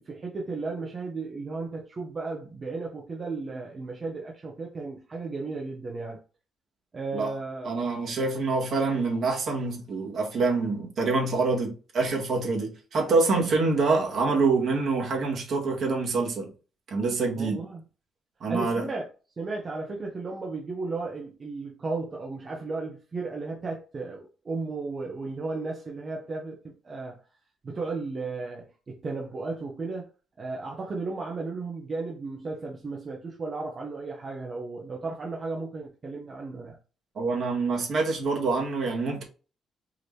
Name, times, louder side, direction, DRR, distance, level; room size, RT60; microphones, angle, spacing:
voice 1, 0.0-6.2 6.9-7.8 17.4-17.8 18.5-19.1 19.4-27.2 27.6-30.1 30.4-36.8, right 3 dB, 40° right, 1.1 m, -34 dB
voice 2, 7.7-16.5 16.9-17.6 18.4-18.8 37.2-39.2, right 3 dB, 60° right, 2.0 m, -26 dB
4.8 x 3.0 x 3.4 m
cardioid pair, 90°, 0 cm